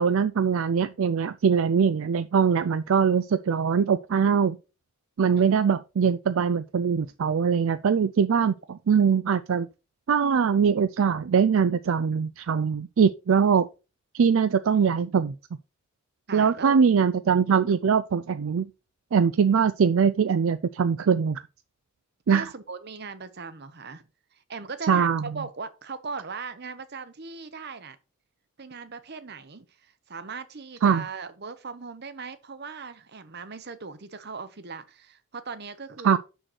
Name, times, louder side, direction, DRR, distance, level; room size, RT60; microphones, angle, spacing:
voice 1, 0.0-4.6 5.2-8.6 8.9-9.7 10.1-13.7 14.1-15.3 16.3-18.7 19.1-21.4 22.3-22.5 24.9-25.2 30.8-31.0 36.0-36.2, right 6 dB, 65° right, 0.4 m, -22 dB
voice 2, 14.8-15.2 16.3-16.8 22.3-24.0 24.3-28.0 28.6-36.2, right 5 dB, 50° right, 0.8 m, -39 dB
6.4 x 6.4 x 4.3 m
head